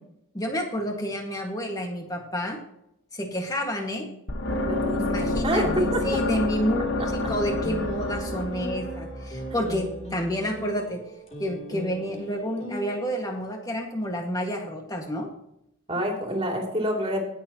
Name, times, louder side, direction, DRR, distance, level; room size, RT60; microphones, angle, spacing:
voice 1, 0.3-2.6 3.1-4.1 5.1-11.0 11.4-15.3, equal, 15° left, 2 dB, 1.8 m, -29 dB
sound 1, 4.3-10.3, left 2 dB, 55° left, 1.4 m, -29 dB
voice 2, 4.7-6.0 6.8-7.1 15.9-17.2, equal, 25° right, 0 dB, 2.8 m, -28 dB
sound 2, 5.3-13.4, right 1 dB, 30° left, 3.0 m, -39 dB
19.5 x 7.1 x 3.0 m, 0.79 s
head